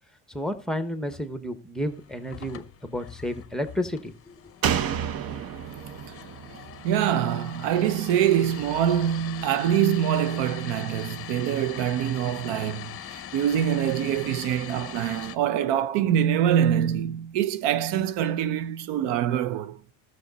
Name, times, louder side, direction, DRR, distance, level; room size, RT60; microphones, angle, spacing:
voice 1, 0.3-4.3, equal, ahead, 0.9 m, -31 dB
sound 1, 1.8-15.4, left 10 dB, 35° left, 0.7 m, -42 dB
Slam, 4.6-8.1 8.4-8.5, right 8 dB, 55° right, 0.8 m, -31 dB
voice 2, 6.8-19.8, right 10 dB, 90° right, 0.7 m, -24 dB
14.0 x 6.4 x 4.0 m
cardioid pair, 120°, 41 cm